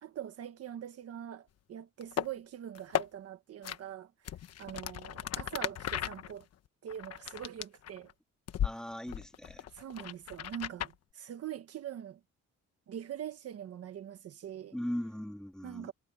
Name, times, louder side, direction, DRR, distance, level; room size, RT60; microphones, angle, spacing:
voice 1, 0.0-4.1 4.6-6.5 6.8-8.1 9.7-12.2 12.9-14.8 15.6-15.9, right 10 dB, 55° right, 1.4 m, -43 dB
sound 1, 2.0-2.3 2.7-3.1 3.6-3.8 4.2-8.1 8.5-8.7 9.1-10.9, left 10 dB, 60° left, 1.2 m, -36 dB
voice 2, 8.6-9.6 14.7-15.9, equal, ahead, 2.4 m, -39 dB
cardioid pair, 170°, 29 cm